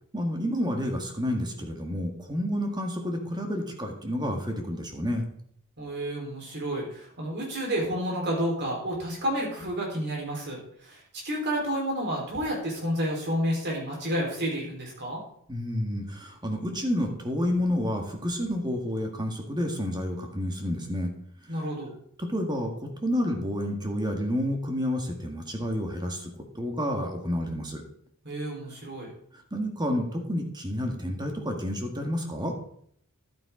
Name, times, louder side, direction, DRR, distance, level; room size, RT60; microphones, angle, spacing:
voice 1, 0.1-5.3 15.5-21.1 22.2-22.7 23.0-27.8 29.5-32.5, equal, 20° right, 3 dB, 1.8 m, -29 dB
voice 2, 5.8-15.2 21.5-22.0 28.2-29.1, equal, 50° right, -1 dB, 4.1 m, -30 dB
11.5 x 9.1 x 3.8 m, 0.66 s
head